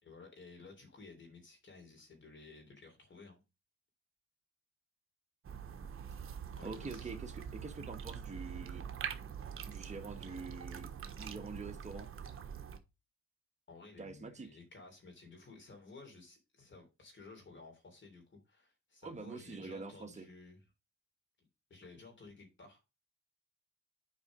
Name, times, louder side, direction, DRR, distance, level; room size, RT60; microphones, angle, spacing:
voice 1, 0.0-3.4 6.6-7.1 13.7-20.6 21.4-22.9, left 3 dB, 40° left, 3.5 m, -55 dB
sound 1, 5.4-12.8, right 7 dB, 45° right, 1.2 m, -44 dB
voice 2, 6.6-8.8 9.7-10.9 11.2-12.1 14.0-14.5 19.0-20.3, right 3 dB, 25° right, 1.5 m, -45 dB
7.3 x 5.1 x 5.1 m
cardioid pair, 90°, 30 cm